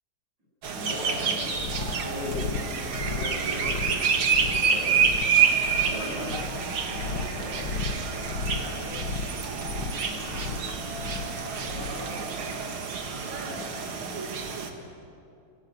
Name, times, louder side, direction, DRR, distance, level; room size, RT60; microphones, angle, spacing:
sound 1, 0.6-14.7, right 6 dB, 75° right, 2.5 m, -28 dB
voice 1, 0.7-5.0 5.7-6.3 6.8-7.6 8.5-8.9 10.0-10.6 11.7-12.2 13.3-13.6, left 1 dB, 55° right, -5 dB, 7.8 m, -39 dB
sound 2, 1.5-12.1, left 4 dB, 60° left, 1.9 m, -35 dB
23.0 x 18.5 x 9.3 m, 2.6 s
omnidirectional pair, 2.4 m